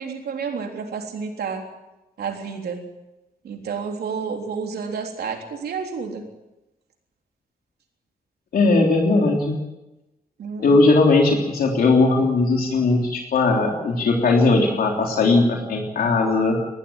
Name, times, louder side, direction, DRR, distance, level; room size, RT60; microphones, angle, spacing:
voice 1, 0.0-1.6 2.2-2.8 3.4-6.2 10.4-10.8, right 5 dB, 85° right, 2 dB, 3.6 m, -30 dB
voice 2, 8.5-9.6 10.6-16.6, left 3 dB, 70° left, 0 dB, 3.4 m, -18 dB
20.5 x 15.0 x 9.2 m, 1.0 s
wide cardioid pair, 150°, 16 cm